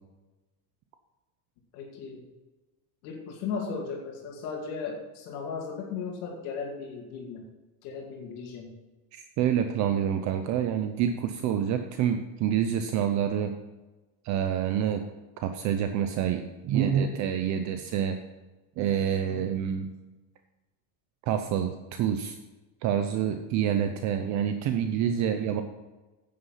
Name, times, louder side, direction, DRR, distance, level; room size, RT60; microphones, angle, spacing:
voice 1, 1.7-2.2 3.0-7.4 7.8-8.7 19.2-19.5 25.1-25.5, left 5 dB, 75° left, -1 dB, 2.5 m, -36 dB
voice 2, 9.1-13.5 14.2-15.0 15.4-18.2 18.8-19.9 21.3-22.4 22.8-25.6, right 9 dB, 40° right, 7 dB, 0.7 m, -27 dB
9.9 x 8.7 x 5.6 m, 1.1 s
cardioid pair, 170°, 44 cm